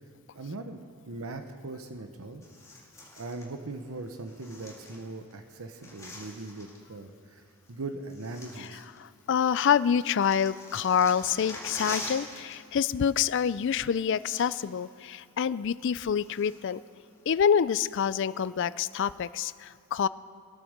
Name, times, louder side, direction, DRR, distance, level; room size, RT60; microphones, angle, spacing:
voice 1, 0.3-2.4 3.1-8.9, right 2 dB, 75° right, 6 dB, 0.9 m, -40 dB
sound 1, 2.4-3.5 4.3-5.3 5.6-6.8 7.7-7.8 8.1-9.3 9.6-12.6 12.8-13.0 13.8-13.9 14.1-14.8 15.2-15.3 15.8-16.8 17.3-17.4, left 2 dB, 15° left, 1.9 m, -44 dB
voice 2, 9.0-16.8 17.3-20.1, left 7 dB, 55° left, 17 dB, 0.4 m, -27 dB
20.5 x 8.9 x 6.5 m, 2.4 s
head